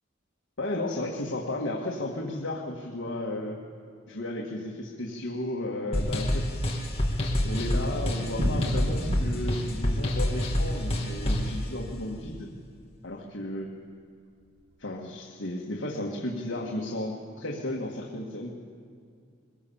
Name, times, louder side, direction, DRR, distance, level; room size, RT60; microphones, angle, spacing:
voice 1, 0.6-3.6 4.1-6.7 7.4-12.5 13.0-13.7 14.8-18.5, left 1 dB, 70° left, -2 dB, 1.9 m, -34 dB
sound 1, 5.9-11.6, left 1 dB, 30° left, 2.1 m, -27 dB
Thunder, 6.8-12.8 13.0-13.1 13.4-13.5 13.7-13.8 14.4-14.7, right 1 dB, 60° right, 2.0 m, -39 dB
22.0 x 16.5 x 7.2 m, 2.3 s
head